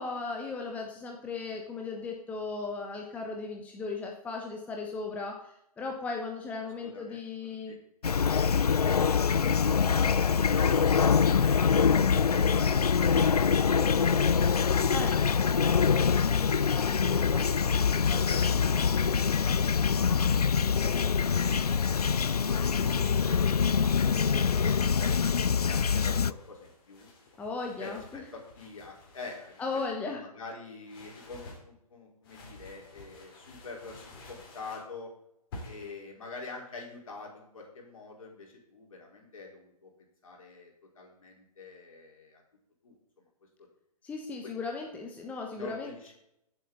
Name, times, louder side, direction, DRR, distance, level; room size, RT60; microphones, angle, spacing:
voice 1, 0.0-7.7 9.4-9.6 14.9-15.1 27.4-28.2 29.6-30.2 44.0-45.9, left 4 dB, 5° left, 1 dB, 1.0 m, -36 dB
voice 2, 6.8-7.8 10.5-15.1 15.4-15.6 16.3-16.7 17.0-17.6 17.8-19.1 19.4-20.2 23.9-25.2 25.6-27.1 27.8-29.6 30.1-35.1 35.6-39.9 40.2-42.4 42.8-43.0 45.5-46.1, left 3 dB, 60° left, -1 dB, 4.3 m, -45 dB
Fowl / Chirp tweet, 8.0-26.3, left 6 dB, 75° left, 0.5 m, -25 dB
sound 1, 19.8-20.6 21.4-21.8 22.6-23.0 23.7-25.2 26.2-30.0 30.8-31.6 32.2-34.9 35.5-36.0, left 2 dB, 35° left, 3.7 m, -50 dB
15.5 x 7.9 x 3.9 m, 0.79 s
figure-of-eight pair, 135°, 20 cm